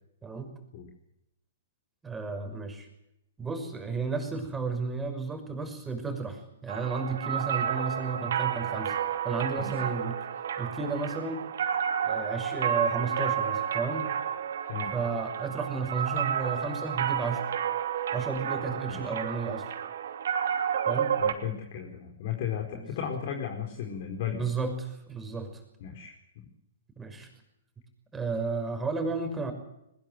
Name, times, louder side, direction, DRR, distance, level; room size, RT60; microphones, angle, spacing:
voice 1, 2.0-2.9 3.4-9.0 9.2-10.2 10.6-11.4 12.0-14.1 14.9-17.5 18.1-19.7 20.9-21.2 22.7-22.9 24.3-25.6 27.0-27.3 28.1-29.5, right 4 dB, 10° right, 6 dB, 5.9 m, -33 dB
sound 1, 6.7-21.3, right 8 dB, 60° right, 2.8 m, -31 dB
voice 2, 21.2-24.4 25.8-26.1, left 8 dB, 45° left, 2 dB, 4.5 m, -35 dB
22.0 x 21.0 x 7.7 m, 0.82 s
figure-of-eight pair, 120°, 0 cm